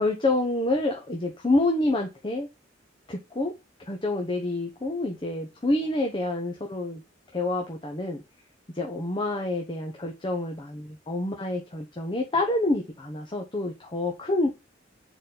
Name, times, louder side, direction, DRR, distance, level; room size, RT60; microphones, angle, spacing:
voice 1, 0.0-2.5 3.1-3.5 3.9-7.0 7.3-8.2 8.8-14.5, left 2 dB, 25° left, 1.0 m, -27 dB
6.8 x 4.1 x 3.9 m
head